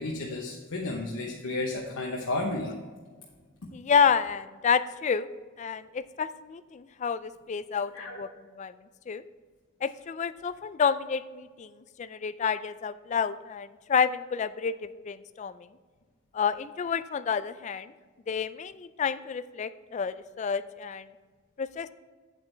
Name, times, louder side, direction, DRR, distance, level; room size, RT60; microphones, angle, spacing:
voice 1, 0.0-2.7 7.9-8.2, left 2 dB, 80° left, -1 dB, 1.0 m, -32 dB
voice 2, 3.7-5.3 5.6-8.3 8.6-8.7 9.1-9.2 9.8-11.7 12.0-15.5 16.3-17.9 18.3-21.1 21.6-21.9, left 6 dB, 35° left, 14 dB, 0.3 m, -29 dB
8.3 x 8.0 x 3.3 m, 1.5 s
head